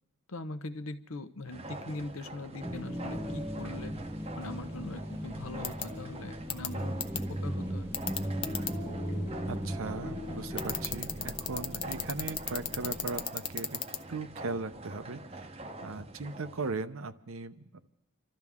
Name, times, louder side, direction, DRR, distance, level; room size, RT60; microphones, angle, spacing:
voice 1, 0.3-3.9 4.3-7.9, left 2 dB, 75° left, 11 dB, 0.8 m, -41 dB
sound 1, 1.4-16.7, right 2 dB, 25° right, 0.7 m, -46 dB
sound 2, 2.6-13.3, equal, 10° right, 1.1 m, -37 dB
sound 3, 5.6-5.8 6.5-6.7 7.0-7.2 7.9-8.7 10.6-14.0, left 8 dB, 25° left, 0.6 m, -32 dB
voice 2, 9.5-13.8 14.1-15.5 15.8-17.7, right 3 dB, 70° right, 12 dB, 0.7 m, -38 dB
27.0 x 12.5 x 3.6 m, 0.84 s
head